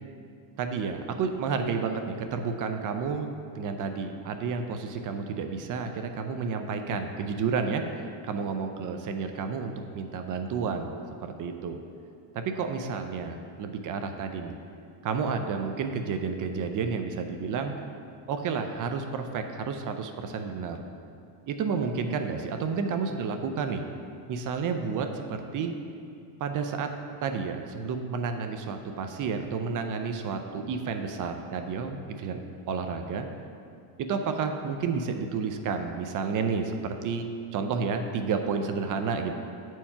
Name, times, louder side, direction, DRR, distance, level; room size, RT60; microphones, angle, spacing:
voice 1, 0.6-7.8 8.2-10.9 11.2-11.8 12.3-14.5 15.0-17.7 18.3-20.8 21.5-23.8 24.3-25.7 26.4-26.9 27.2-32.4 32.7-33.3 34.0-37.3 37.5-39.3, right 5 dB, 40° right, 6 dB, 0.5 m, -31 dB
8.5 x 4.6 x 5.6 m, 2.5 s
cardioid pair, 130°, 49 cm